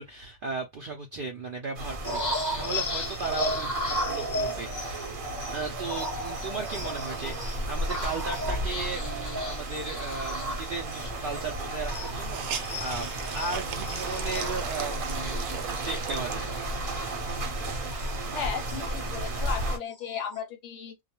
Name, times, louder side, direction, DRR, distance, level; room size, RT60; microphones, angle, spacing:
voice 1, 0.0-5.0 5.5-16.5, right 4 dB, 65° right, 0.5 m, -36 dB
sound 1, 1.7-19.8, right 2 dB, 45° right, 0.9 m, -34 dB
sound 2, 2.0-12.3 12.6-17.5 17.9-18.1 18.4-19.5 19.9-20.4, left 1 dB, 20° left, 0.5 m, -35 dB
Hiss, 11.0-11.1 11.4-11.5 11.9-16.9 17.5-17.6 17.9-19.3, right 7 dB, 85° right, 1.0 m, -40 dB
voice 2, 18.3-21.0, left 7 dB, 65° left, 0.8 m, -35 dB
2.3 x 2.1 x 2.9 m
omnidirectional pair, 1.5 m